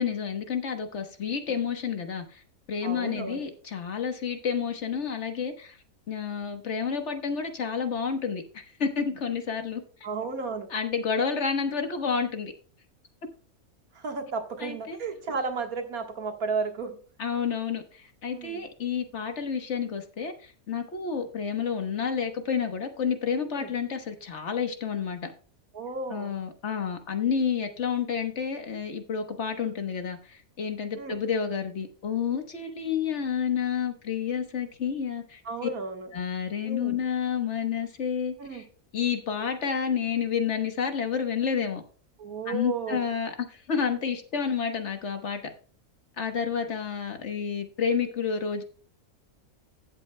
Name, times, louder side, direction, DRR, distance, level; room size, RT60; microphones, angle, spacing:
voice 1, 0.0-2.4 2.7-5.8 6.1-9.8 10.7-12.5 14.6-15.0 17.2-17.8 18.2-25.3 26.1-35.7 36.1-38.6 38.9-41.8 42.5-45.4 46.2-48.6, left 6 dB, 55° left, 7 dB, 1.4 m, -30 dB
voice 2, 2.8-3.5 10.0-10.7 14.0-17.0 18.3-18.7 23.5-23.7 25.7-26.3 31.0-31.2 35.5-36.1 36.7-37.0 38.4-38.6 42.2-43.1, right 4 dB, 80° right, 4 dB, 2.0 m, -33 dB
15.0 x 7.9 x 2.2 m, 0.39 s
omnidirectional pair, 1.5 m